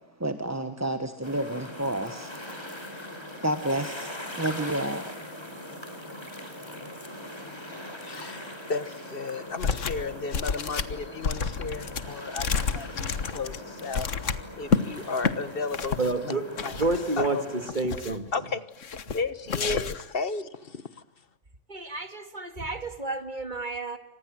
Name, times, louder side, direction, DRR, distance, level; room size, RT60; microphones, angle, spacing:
voice 1, 0.2-2.3 3.4-4.1 4.4-5.1, right 1 dB, 10° right, 1.2 m, -29 dB
sound 1, 1.2-17.7, left 1 dB, 15° left, 4.4 m, -41 dB
voice 2, 8.0-14.1 14.6-16.4 16.6-16.7 17.2-17.4 18.3-18.6 19.1-21.0, left 4 dB, 40° left, 1.4 m, -34 dB
sound 2, 9.6-10.1 10.3-14.8 15.2-15.3 15.7-16.1 16.6-17.3 17.7-18.3 18.8-19.2 19.5-20.1, left 6 dB, 60° left, 1.6 m, -29 dB
voice 3, 16.0-16.4 16.8-17.4 17.7-18.2 21.7-24.0, right 3 dB, 30° right, 2.3 m, -29 dB
29.0 x 26.0 x 7.7 m
omnidirectional pair, 1.5 m